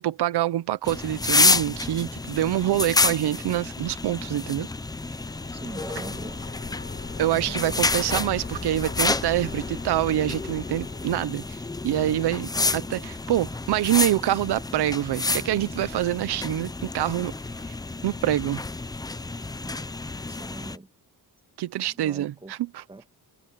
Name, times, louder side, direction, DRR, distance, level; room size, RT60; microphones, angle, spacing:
voice 1, 0.0-4.7 7.2-11.4 11.8-17.3 18.0-18.6 21.6-22.8, right 13 dB, 85° right, 0.9 m, -26 dB
sound 1, 0.8-20.8, left 3 dB, 10° left, 0.5 m, -29 dB
sound 2, 5.1-11.6, left 4 dB, 30° left, 4.1 m, -40 dB
voice 2, 5.5-6.4 7.1-7.8 19.6-19.9 20.3-20.9 21.9-22.5 22.9-23.2, right 2 dB, 15° right, 1.8 m, -42 dB
open air
wide cardioid pair, 160°, 39 cm